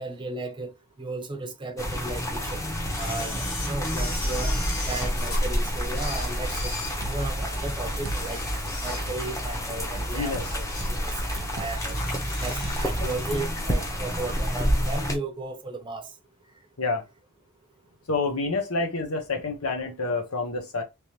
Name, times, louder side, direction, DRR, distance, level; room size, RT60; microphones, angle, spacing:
voice 1, 0.0-2.6 3.0-4.6 4.8-6.7 7.0-8.4 8.8-12.0 12.4-16.1, right 2 dB, 20° right, 0.6 m, -35 dB
sound 1, 1.8-15.2, equal, 15° left, 0.8 m, -29 dB
Camera, 2.9-5.4 5.9-7.5 8.0-9.4 9.7-9.9 10.4-11.0 11.4-11.5 11.8-12.9 13.2-13.3, left 3 dB, 45° left, 1.8 m, -38 dB
sound 2, 6.6-7.3 7.8-8.5 8.8-9.3 9.8-11.1 11.4-12.1 12.4-12.8 13.1-14.0, right 4 dB, 60° right, 0.5 m, -41 dB
voice 2, 10.1-10.5 16.8-17.0 18.1-20.8, left 3 dB, 85° left, 1.1 m, -28 dB
3.5 x 3.1 x 2.9 m
head